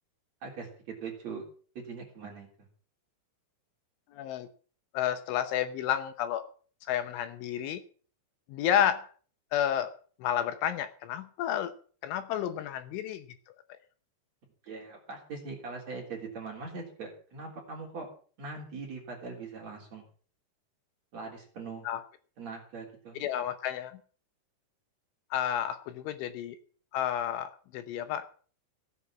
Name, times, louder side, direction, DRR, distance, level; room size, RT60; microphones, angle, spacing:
voice 1, 0.4-1.4 1.7-2.5 14.6-18.1 18.4-20.0 21.1-21.9 22.4-23.2, right 4 dB, 35° right, 0 dB, 4.1 m, -41 dB
voice 2, 4.1-4.5 4.9-6.5 6.9-7.8 8.5-9.1 9.5-11.7 12.0-13.2 21.9-22.0 23.2-23.9 25.3-26.6 26.9-28.2, left 10 dB, 75° left, 9 dB, 3.2 m, -31 dB
16.5 x 8.4 x 7.3 m, 0.43 s
omnidirectional pair, 5.8 m